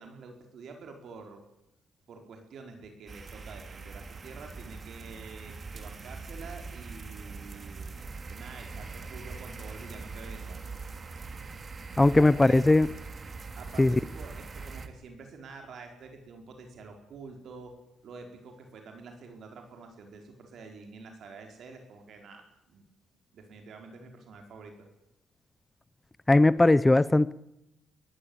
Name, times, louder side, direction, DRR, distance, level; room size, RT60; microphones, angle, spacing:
voice 1, 0.0-1.4 2.1-7.9 8.3-10.6 12.0-12.6 13.6-17.8 18.0-22.8 23.3-24.9, right 4 dB, 65° right, 4 dB, 4.6 m, -47 dB
sound 1, 3.1-14.9, right 4 dB, 40° right, 2.2 m, -42 dB
voice 2, 12.0-12.9 13.8-14.0 26.3-27.3, left 2 dB, 15° left, 18 dB, 0.7 m, -19 dB
23.0 x 15.0 x 8.8 m, 0.84 s
cardioid pair, 90°, 0 cm